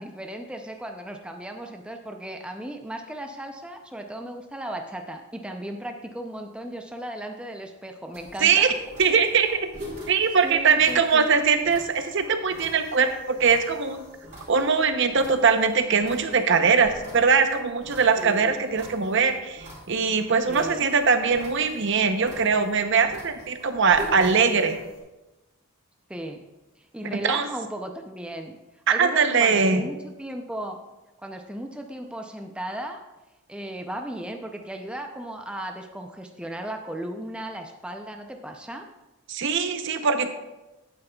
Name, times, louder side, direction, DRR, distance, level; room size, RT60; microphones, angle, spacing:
voice 1, 0.0-8.7 10.4-11.3 18.2-18.5 20.5-20.8 26.1-26.4 26.8-30.8 31.2-33.0 33.5-38.9, right 1 dB, 5° right, 4 dB, 0.4 m, -36 dB
sound 1, 8.1-25.0, equal, 35° right, 3.4 m, -45 dB
voice 2, 9.0-9.7 10.1-14.0 14.5-24.8 27.2-27.5 28.9-29.9 39.3-40.3, right 5 dB, 55° right, 8 dB, 0.7 m, -21 dB
11.5 x 8.9 x 2.3 m, 1.0 s
head